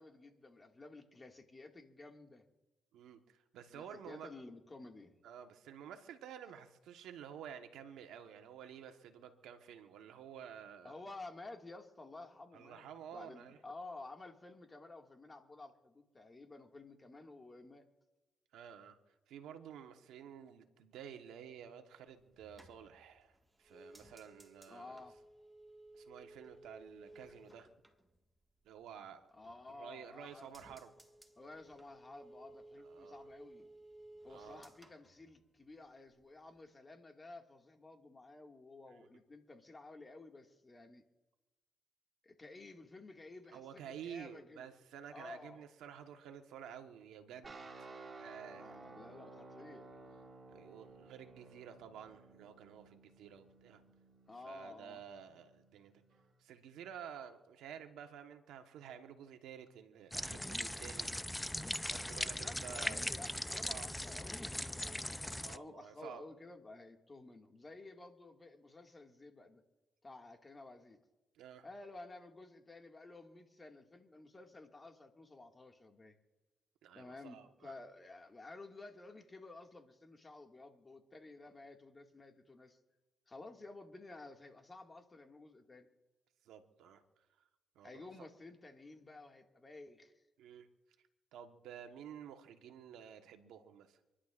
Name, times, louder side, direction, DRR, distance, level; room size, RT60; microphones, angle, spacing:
voice 1, 0.0-2.4 3.7-5.2 10.8-17.9 24.7-25.1 29.3-30.8 31.4-33.7 34.2-41.0 42.2-44.7 45.1-45.6 48.5-49.9 54.3-55.0 62.4-69.6 70.0-71.0 71.6-76.2 77.0-82.8 83.3-85.9 87.8-90.1, left 2 dB, 30° left, 3 dB, 2.0 m, -53 dB
voice 2, 2.9-4.3 5.2-11.0 12.5-13.6 18.5-25.0 25.9-27.7 28.6-29.2 29.7-30.9 32.8-33.2 34.3-34.7 38.9-39.1 43.5-47.6 48.2-48.8 50.5-53.8 54.4-55.9 56.4-61.1 61.8-63.0 63.7-63.9 65.3-66.2 71.3-71.7 76.8-77.8 86.4-87.3 87.7-88.0 90.4-90.7 91.3-94.0, right 8 dB, 85° right, 6 dB, 1.2 m, -51 dB
sound 1, 22.2-28.9 29.2-29.9 30.2-35.9 36.2-36.7, right 1 dB, 10° right, 1.8 m, -59 dB
sound 2, 47.4-56.3, right 3 dB, 40° right, 2.9 m, -55 dB
sound 3, 60.1-65.6, left 1 dB, 10° left, 0.5 m, -40 dB
27.5 x 11.5 x 2.5 m, 1.1 s
supercardioid pair, 60°, 0 cm